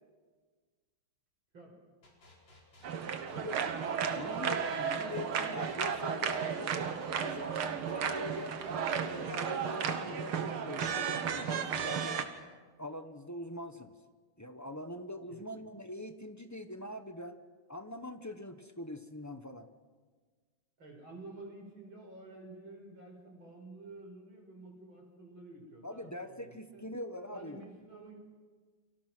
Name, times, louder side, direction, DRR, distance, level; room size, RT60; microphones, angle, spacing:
sound 1, 2.0-10.0, left 2 dB, 60° left, 5.5 m, -58 dB
sound 2, 2.8-12.2, right 7 dB, 85° right, 2.3 m, -34 dB
voice 1, 3.3-3.7 4.1-6.8 7.2-12.2 12.8-13.9 14.4-17.4 17.7-19.7 25.8-27.6, left 1 dB, 20° left, 8 dB, 0.5 m, -43 dB
voice 2, 20.8-26.9 27.3-28.1, right 2 dB, 70° right, 2 dB, 5.8 m, -50 dB
29.5 x 24.5 x 6.2 m, 1.5 s
omnidirectional pair, 2.3 m